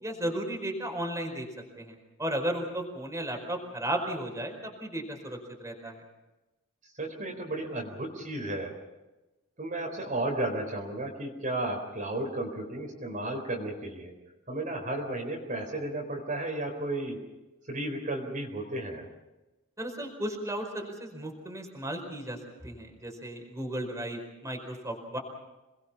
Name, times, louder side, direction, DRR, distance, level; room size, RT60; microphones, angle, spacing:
voice 1, 0.0-1.5 1.8-6.0 19.8-22.4 22.6-25.2, right 1 dB, 15° right, 2 dB, 4.9 m, -34 dB
voice 2, 7.0-8.7 9.6-14.1 14.5-17.2 17.7-19.1, right 1 dB, 35° right, 1 dB, 4.3 m, -33 dB
28.0 x 21.0 x 5.8 m, 1.0 s
head